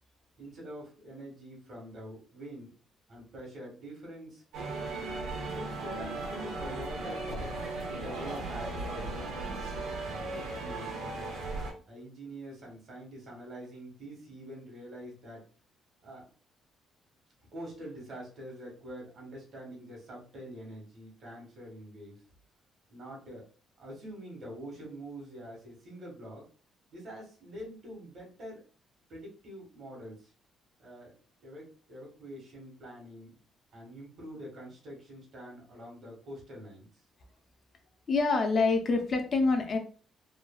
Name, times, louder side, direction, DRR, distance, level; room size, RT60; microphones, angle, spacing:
voice 1, 0.4-2.7 3.1-4.4 5.1-7.6 7.8-9.6 10.0-11.4 11.9-15.4 16.0-16.2 17.5-22.2 22.9-23.4 23.8-26.5 26.9-28.6 29.1-30.3 30.8-33.4 33.7-37.0, right 1 dB, 50° right, -1 dB, 1.3 m, -45 dB
sound 1, 4.5-11.7, right 2 dB, 90° right, 0.8 m, -36 dB
voice 2, 38.1-39.8, left 3 dB, 40° left, 5 dB, 0.4 m, -26 dB
3.1 x 2.2 x 2.2 m, 0.39 s
cardioid pair, 145°, 0 cm